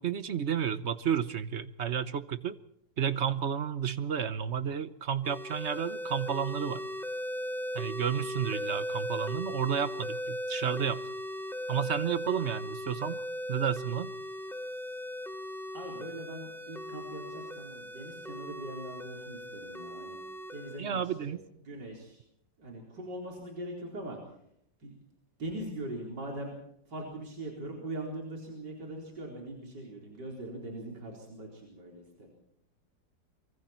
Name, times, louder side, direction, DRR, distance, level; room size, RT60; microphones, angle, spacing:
voice 1, 0.0-2.6 3.0-6.9 7.7-11.0 11.7-13.2 13.5-14.1 20.8-21.4, right 8 dB, 45° right, 13 dB, 1.0 m, -31 dB
sound 1, 5.2-20.8, equal, 5° left, 0.4 m, -38 dB
voice 2, 15.7-20.2 20.5-21.4 21.6-22.2 22.6-24.2 24.8-24.9 25.4-26.5 26.9-32.3, right 1 dB, 65° right, 0 dB, 4.9 m, -41 dB
24.5 x 24.0 x 4.5 m, 0.73 s
omnidirectional pair, 2.0 m